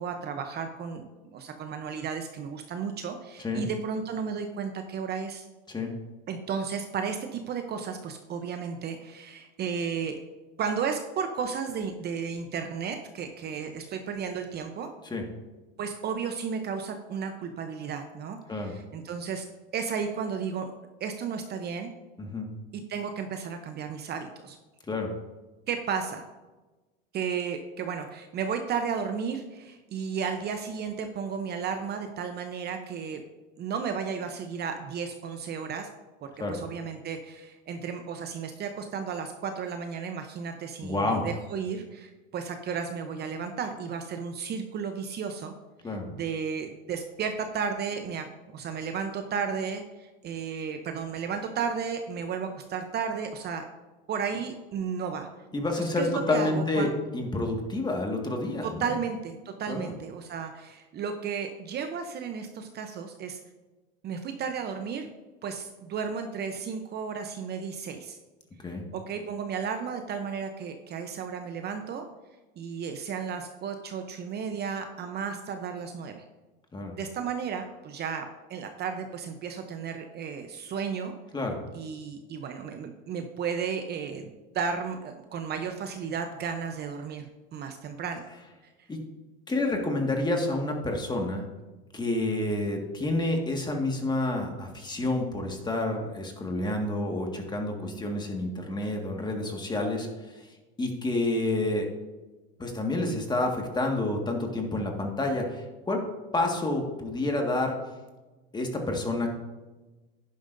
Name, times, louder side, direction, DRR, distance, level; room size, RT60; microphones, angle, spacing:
voice 1, 0.0-5.5 6.3-10.2 10.6-14.9 15.8-19.5 19.7-20.7 21.0-21.9 22.7-24.6 25.7-26.2 27.1-33.2 33.6-35.9 36.2-45.5 46.1-48.3 48.5-53.6 54.1-55.3 55.8-56.9 58.6-63.4 64.0-65.1 65.4-68.2 68.7-72.1 72.6-76.2 77.0-81.1 81.7-88.2, right 6 dB, 35° right, 6 dB, 0.8 m, -33 dB
voice 2, 40.8-41.3 45.8-46.1 55.5-58.9 59.7-59.9 68.6-68.8 76.7-77.0 81.3-81.6 88.9-89.0 89.5-91.5 91.9-100.1 100.8-101.9 102.6-106.0 106.3-107.8 108.5-109.3, left 2 dB, 15° left, 2 dB, 1.8 m, -29 dB
11.0 x 10.5 x 2.7 m, 1.2 s
supercardioid pair, 110°, 29 cm